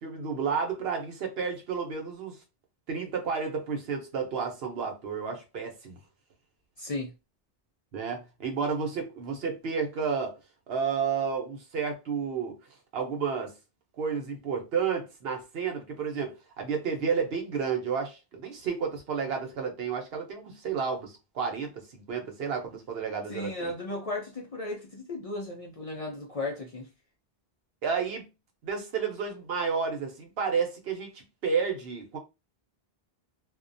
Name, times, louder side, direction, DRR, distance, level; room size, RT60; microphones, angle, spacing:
voice 1, 0.0-2.4 2.9-6.0 7.9-10.4 10.7-12.6 12.9-13.5 14.0-23.7 27.8-28.2 28.6-32.2, right 6 dB, 75° right, 1.0 m, -31 dB
voice 2, 6.8-7.1 23.3-26.9, left 2 dB, 50° left, 0.5 m, -35 dB
2.4 x 2.1 x 2.5 m
omnidirectional pair, 1.0 m